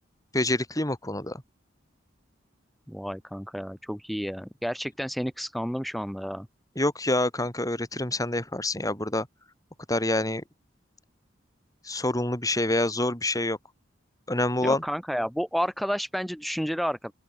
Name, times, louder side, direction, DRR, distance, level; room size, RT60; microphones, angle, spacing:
voice 1, 0.3-1.4 6.8-9.3 9.9-10.4 11.9-13.6 14.3-14.8, left 1 dB, 20° left, 7.8 m, -26 dB
voice 2, 2.9-6.5 14.6-17.1, equal, ahead, 4.7 m, -31 dB
open air
head